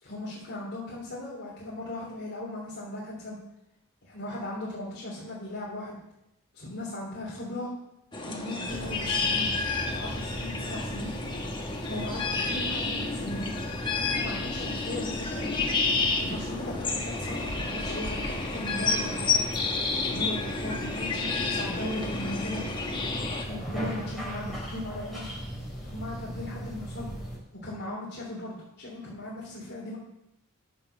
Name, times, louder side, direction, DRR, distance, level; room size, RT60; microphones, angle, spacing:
voice 1, 0.0-3.4 4.0-6.0 6.5-7.7 8.2-9.5 9.8-11.1 11.8-13.5 14.0-15.6 16.2-19.4 19.7-22.7 23.4-25.3 25.9-27.1 27.6-30.0, left 1 dB, 50° left, -6 dB, 3.0 m, -37 dB
sound 1, 8.1-23.4, left 4 dB, 20° left, 1.4 m, -30 dB
sound 2, 8.6-27.4, equal, ahead, 3.6 m, -38 dB
10.5 x 6.5 x 6.6 m, 0.84 s
head